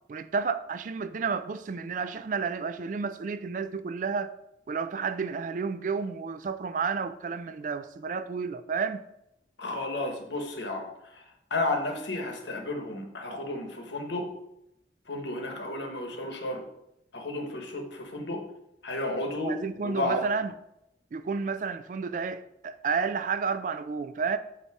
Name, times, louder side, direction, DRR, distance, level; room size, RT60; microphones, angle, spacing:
voice 1, 0.1-4.3 4.7-9.0 19.4-20.5 21.1-24.4, right 5 dB, 45° right, 0.3 m, -31 dB
voice 2, 9.6-11.2 11.5-14.3 15.1-16.6 17.1-18.4 18.8-19.5 19.8-20.2, left 2 dB, 85° left, 1.0 m, -32 dB
8.3 x 2.8 x 4.7 m
head